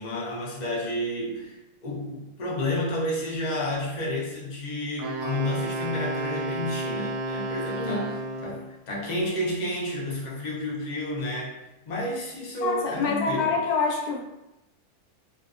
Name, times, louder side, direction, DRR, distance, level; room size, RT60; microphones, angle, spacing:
voice 1, 0.0-11.6 11.9-13.6, left 1 dB, 60° left, -4 dB, 0.4 m, -31 dB
Wind instrument woodwind instrument, 5.0-8.7, right 1 dB, 75° right, 1.0 m, -31 dB
voice 2, 7.8-8.1 12.6-14.2, left 4 dB, 85° left, 0 dB, 1.1 m, -26 dB
2.6 x 2.1 x 2.4 m, 0.93 s
omnidirectional pair, 1.6 m